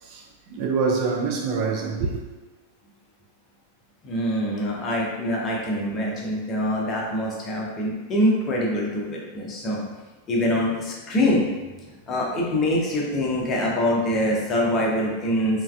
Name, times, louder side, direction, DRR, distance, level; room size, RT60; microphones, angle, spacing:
voice 1, 0.0-2.2, right 4 dB, 45° right, 0.4 m, -26 dB
voice 2, 4.0-9.8 10.3-11.5 12.1-15.6, left 1 dB, 25° left, 0.6 m, -24 dB
3.1 x 2.3 x 2.3 m
figure-of-eight pair, 90°, 0 cm